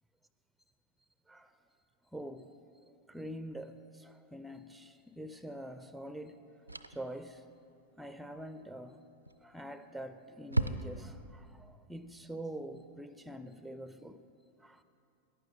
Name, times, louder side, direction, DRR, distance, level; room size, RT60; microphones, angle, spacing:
voice 1, 2.1-6.4 6.9-7.4 8.0-9.0 9.4-14.2 14.6-14.8, right 1 dB, ahead, 0.4 m, -45 dB
sound 1, 5.3-5.5 6.7-7.2 9.2-9.7 10.0-10.1 10.5-11.3, right 2 dB, 85° right, 0.4 m, -35 dB
15.0 x 11.0 x 4.3 m
figure-of-eight pair, 90°, 0 cm